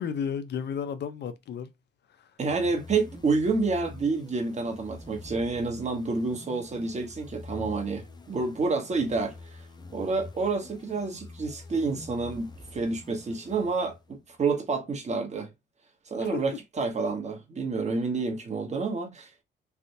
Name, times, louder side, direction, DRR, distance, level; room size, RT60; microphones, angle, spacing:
voice 1, 0.0-1.7 2.2-2.3 16.2-16.4, left 7 dB, 60° left, 0.7 m, -33 dB
voice 2, 2.4-9.3 9.9-15.5 16.1-19.3, right 4 dB, 35° right, 1.2 m, -29 dB
sound 1, 2.5-14.2, left 3 dB, 20° left, 0.7 m, -46 dB
3.4 x 2.5 x 2.7 m
cardioid pair, 90°, 20 cm